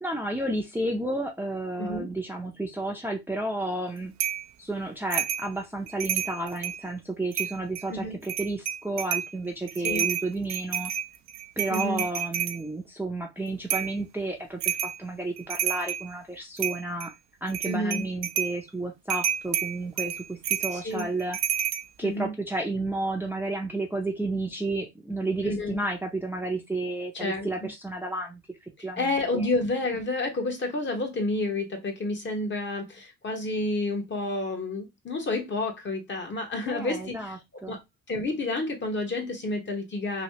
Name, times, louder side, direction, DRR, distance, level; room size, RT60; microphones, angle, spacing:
voice 1, 0.0-4.1 4.6-10.9 11.6-17.1 17.4-21.4 22.0-28.4 28.8-29.5 36.7-37.8, right 2 dB, 5° right, 0.6 m, -32 dB
voice 2, 1.8-2.2 7.9-8.2 9.8-10.0 11.7-12.0 17.6-18.0 20.7-21.1 22.0-22.3 25.4-25.8 27.1-27.7 29.0-37.4 37.7-37.8 38.1-40.2, left 2 dB, 40° left, 1.1 m, -30 dB
sound 1, 4.2-4.5 5.1-5.5 5.9-6.8 7.3-7.8 8.2-9.3 9.7-12.6 13.7-14.0 14.6-15.0 15.4-16.1 16.6-17.1 17.5-18.6 19.1-21.8, right 10 dB, 65° right, 0.5 m, -29 dB
3.1 x 2.7 x 2.8 m
cardioid pair, 90°, 30 cm